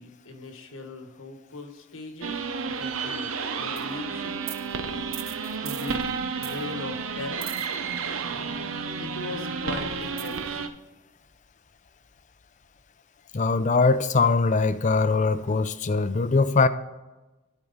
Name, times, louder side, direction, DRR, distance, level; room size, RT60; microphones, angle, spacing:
voice 1, 0.0-2.4 2.8-4.5 5.6-7.5 9.0-10.7, left 2 dB, 80° left, 1.3 m, -39 dB
sound 1, 2.2-10.7, right 5 dB, 85° right, 0.7 m, -31 dB
voice 2, 13.3-16.7, left 4 dB, 35° left, 0.4 m, -22 dB
13.5 x 4.6 x 4.0 m
head